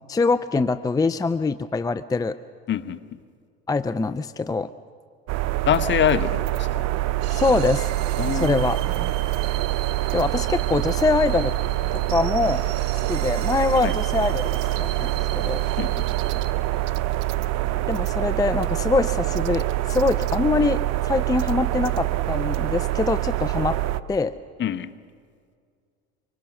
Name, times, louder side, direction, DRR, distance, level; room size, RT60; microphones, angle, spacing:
voice 1, 0.1-2.4 3.7-4.7 7.3-7.9 8.3-8.8 10.1-11.5 11.9-12.6 13.1-15.6 17.9-23.8 24.1-24.3, left 3 dB, 10° left, 13 dB, 0.6 m, -24 dB
voice 2, 2.7-3.0 5.7-6.7 8.2-8.6 13.8-13.9 15.8-16.1 24.6-24.9, left 10 dB, 40° left, 11 dB, 1.1 m, -24 dB
sound 1, 5.3-24.0, right 16 dB, 55° right, 0.9 m, -25 dB
sound 2, 7.2-16.5, right 12 dB, 75° right, 1.8 m, -39 dB
25.0 x 24.5 x 6.3 m, 2.1 s
hypercardioid pair, 90°, 30 cm